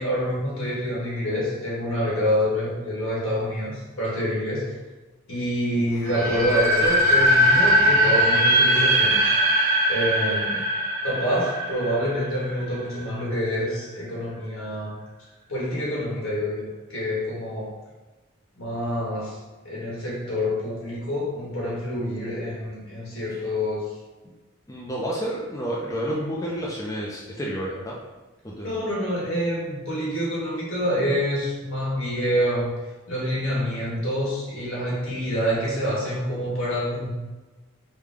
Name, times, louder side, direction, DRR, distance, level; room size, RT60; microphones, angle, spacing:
voice 1, 0.0-4.6 5.3-9.2 9.9-10.6 11.0-15.0 15.5-17.7 18.6-19.3 19.6-23.8 28.6-32.7 33.1-37.2, equal, 70° left, -5 dB, 1.5 m, -27 dB
sound 1, 6.0-12.9, equal, 80° right, 0.9 m, -20 dB
voice 2, 24.7-28.0 28.4-28.8, equal, 15° left, -4 dB, 0.4 m, -30 dB
4.9 x 2.2 x 3.4 m, 1.2 s
head